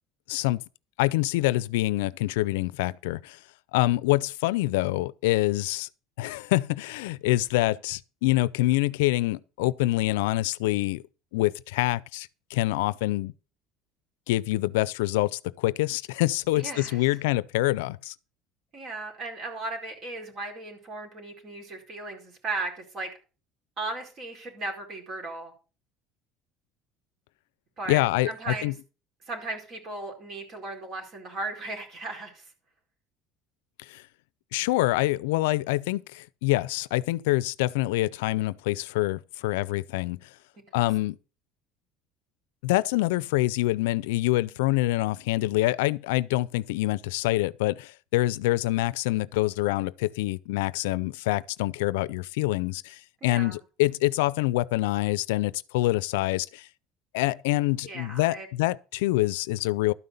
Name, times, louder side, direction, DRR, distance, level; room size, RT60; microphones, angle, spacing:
voice 1, 0.3-0.6 1.0-3.4 3.7-5.9 6.2-11.0 11.3-13.3 14.3-18.1 27.9-28.7 33.9-34.0 34.5-40.2 40.7-41.2 42.6-56.7 57.1-59.9, left 18 dB, 85° left, 0.4 m, -26 dB
voice 2, 16.6-17.0 18.7-23.1 23.8-25.5 27.8-28.7 29.3-32.4 53.2-53.6 57.8-58.5, right 3 dB, 50° right, 4.5 m, -36 dB
12.5 x 5.6 x 6.7 m
supercardioid pair, 90°, 0 cm